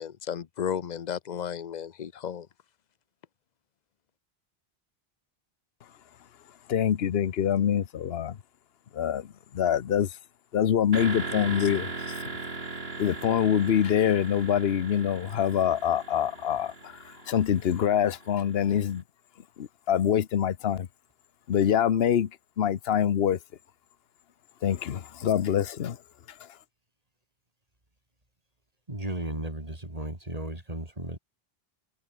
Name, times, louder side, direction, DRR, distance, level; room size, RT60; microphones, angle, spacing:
voice 1, 0.0-2.5, left 8 dB, 50° left, 0.8 m, -33 dB
voice 2, 6.7-8.4 8.9-9.3 9.5-10.2 10.5-12.2 13.0-19.0 19.6-20.9 21.5-22.3 22.6-23.4 24.6-26.0, left 9 dB, 70° left, 1.1 m, -25 dB
sound 1, 10.9-18.7, right 3 dB, 70° right, 3.1 m, -38 dB
voice 3, 28.9-31.2, right 1 dB, 35° right, 4.7 m, -35 dB
omnidirectional pair, 1.1 m